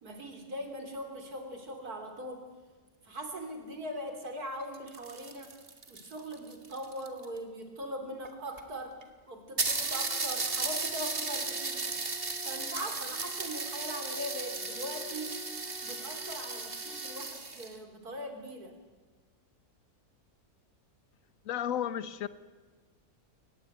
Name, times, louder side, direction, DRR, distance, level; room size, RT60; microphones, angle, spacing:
voice 1, 0.0-2.4 3.0-5.5 5.9-9.0 9.3-11.9 12.4-15.4 15.8-18.7, equal, 80° right, 5 dB, 3.9 m, -41 dB
sound 1, 4.6-7.4 8.2-8.3 8.6-8.7 9.0-9.1 9.6-17.8, right 3 dB, 40° right, 2.1 m, -35 dB
voice 2, 21.5-22.3, left 10 dB, 65° left, 14 dB, 1.4 m, -33 dB
23.5 x 19.5 x 9.2 m, 1.4 s
omnidirectional pair, 1.6 m